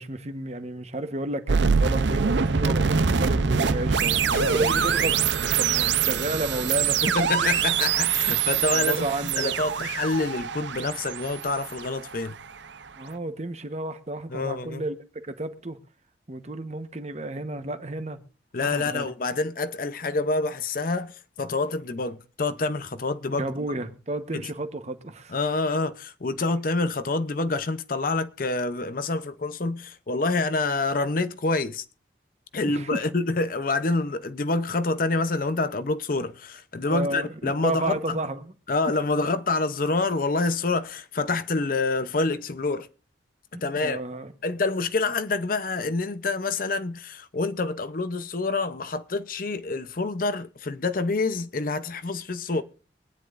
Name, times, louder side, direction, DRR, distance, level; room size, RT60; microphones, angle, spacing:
voice 1, 0.0-7.0 7.4-7.6 8.7-9.5 9.8-9.9 13.0-15.8 16.3-18.2 18.6-19.1 23.3-25.3 32.5-33.0 36.9-38.5 43.5-44.3, right 2 dB, 35° right, 1.1 m, -32 dB
sound 1, 1.5-12.5, right 6 dB, 75° right, 0.7 m, -24 dB
voice 2, 4.3-4.8 7.0-9.1 9.4-12.4 14.3-14.8 18.5-23.5 25.3-31.8 32.5-38.2 38.7-42.9 43.5-44.0 44.4-52.6, left 3 dB, 50° left, 0.7 m, -27 dB
23.5 x 10.0 x 2.5 m
head